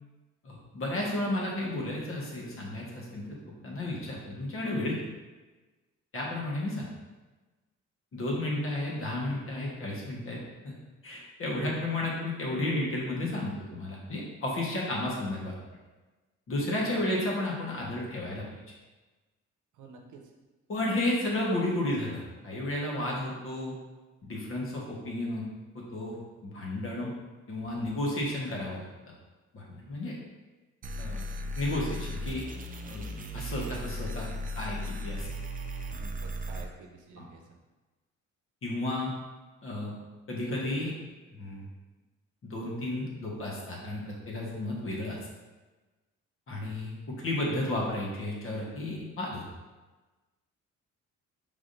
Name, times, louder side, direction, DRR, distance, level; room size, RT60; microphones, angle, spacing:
voice 1, 0.4-3.3 3.6-5.0 6.1-6.9 8.1-10.7 11.0-15.5 16.5-18.5 20.7-23.7 24.2-25.5 25.7-26.2 26.4-27.1 27.5-28.8 29.5-30.1 31.0-31.3 31.5-32.4 32.8-33.0 33.3-34.3 34.5-35.3 37.2-37.3 38.6-39.1 39.6-39.9 40.3-40.9 41.4-41.7 42.4-45.2 46.5-49.4, left 1 dB, 45° left, -3 dB, 1.3 m, -32 dB
voice 2, 19.7-20.2 35.9-37.6, right 4 dB, 75° right, 2 dB, 0.8 m, -50 dB
sound 1, 30.8-36.7, equal, 30° right, 0.4 m, -36 dB
5.0 x 3.5 x 2.6 m, 1.2 s
cardioid pair, 90°, 30 cm